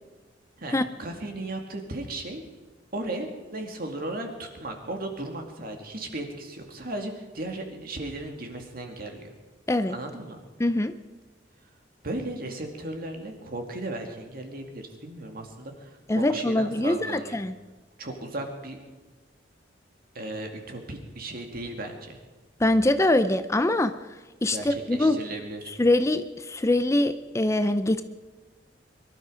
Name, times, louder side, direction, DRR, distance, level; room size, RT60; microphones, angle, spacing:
voice 1, 0.6-2.4 2.9-9.3 9.9-10.4 12.0-17.4 18.0-18.8 20.1-22.2 24.5-25.6, right 1 dB, 55° right, 4 dB, 2.3 m, -36 dB
voice 2, 10.6-10.9 16.1-17.5 22.6-23.9 24.4-25.2 25.8-28.0, left 1 dB, 15° left, 11 dB, 0.5 m, -23 dB
23.0 x 12.5 x 5.0 m, 1.3 s
head